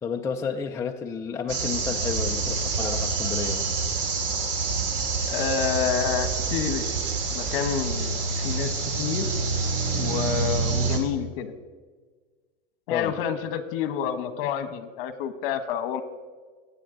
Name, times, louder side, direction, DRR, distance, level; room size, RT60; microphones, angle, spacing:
voice 1, 0.0-3.7 8.5-8.6 12.9-13.1, left 6 dB, 10° left, 2 dB, 0.4 m, -31 dB
sound 1, 1.5-11.0, right 4 dB, 60° right, 2.5 m, -27 dB
voice 2, 5.3-7.0 7.3-9.3 9.9-11.5 12.9-16.0, left 8 dB, 60° left, 11 dB, 1.3 m, -29 dB
22.5 x 8.7 x 3.8 m, 1.4 s
supercardioid pair, 150°, 31 cm